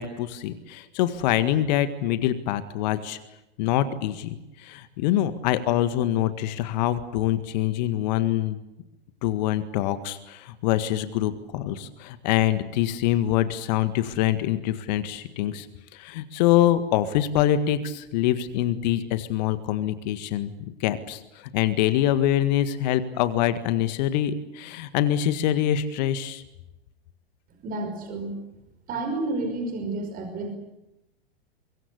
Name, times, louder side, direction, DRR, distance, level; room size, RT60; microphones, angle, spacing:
voice 1, 0.0-3.2 3.6-8.6 9.2-15.7 15.9-20.5 20.8-26.4, left 12 dB, 45° left, 12 dB, 1.8 m, -25 dB
voice 2, 27.6-28.3 28.9-30.6, right 2 dB, 30° right, 6 dB, 5.5 m, -30 dB
24.5 x 22.5 x 8.3 m, 0.93 s
figure-of-eight pair, 100°, 31 cm